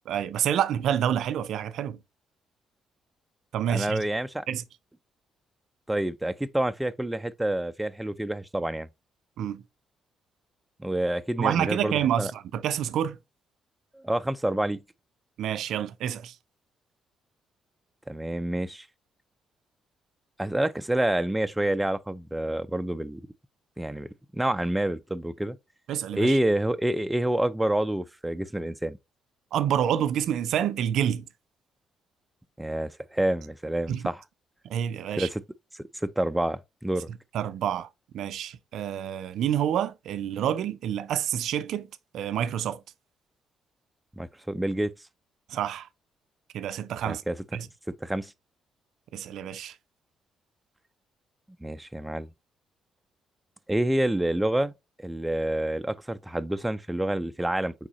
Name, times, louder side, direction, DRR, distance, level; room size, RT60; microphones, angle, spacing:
voice 1, 0.1-2.0 3.5-4.1 4.5-4.6 9.4-9.6 11.4-13.2 15.4-16.3 25.9-26.4 29.5-31.3 33.9-34.1 34.6-35.3 37.3-37.9 38.1-41.9 42.1-42.8 45.5-45.9 46.5-47.2 47.5-47.7 49.1-49.8, right 10 dB, 75° right, 0.4 m, -28 dB
voice 2, 3.7-4.4 5.9-8.9 10.8-12.3 13.9-14.8 18.1-18.9 20.4-23.2 23.8-24.1 24.3-25.6 26.1-29.0 32.6-34.2 35.2-35.4 35.7-37.1 44.2-44.9 47.1-47.4 48.0-48.3 51.6-52.3 53.7-54.7 55.0-57.7, right 1 dB, 10° right, 0.4 m, -28 dB
4.8 x 3.6 x 2.9 m
cardioid pair, 90°, 0 cm